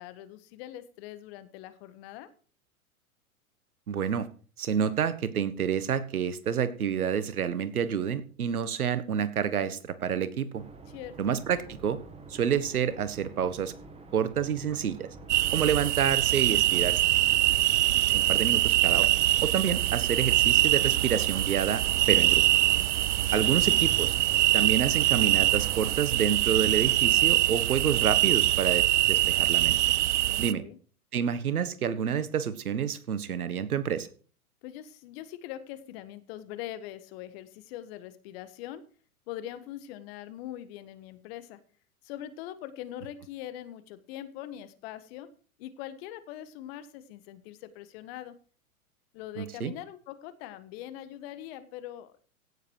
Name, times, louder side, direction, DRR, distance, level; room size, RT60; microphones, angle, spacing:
voice 1, 0.0-2.3 10.9-11.4 23.2-23.6 30.3-30.8 34.6-38.9 39.3-41.6 42.0-45.3 45.6-48.4 49.1-52.2, left 12 dB, 45° left, 13 dB, 1.6 m, -42 dB
voice 2, 3.9-4.3 4.6-10.6 11.2-12.0 12.3-13.7 14.1-15.1 15.5-17.0 18.1-19.1 19.4-22.4 23.3-24.2 24.5-29.8 30.4-30.6 31.1-34.1 49.4-49.7, right 8 dB, 75° right, 14 dB, 1.5 m, -28 dB
sound 1, 10.5-26.0, right 4 dB, 15° right, 2.3 m, -45 dB
sound 2, 15.3-30.5, right 15 dB, 55° right, 0.6 m, -24 dB
16.5 x 7.5 x 4.7 m, 0.40 s
hypercardioid pair, 110°, 44 cm